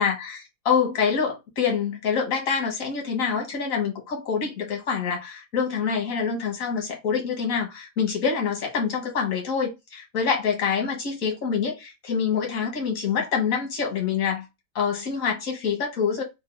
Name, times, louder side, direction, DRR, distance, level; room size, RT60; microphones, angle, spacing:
voice 1, 0.0-14.5 14.7-16.2, left 6 dB, 90° left, 1.6 m, -26 dB
3.6 x 2.2 x 3.3 m
omnidirectional pair, 1.4 m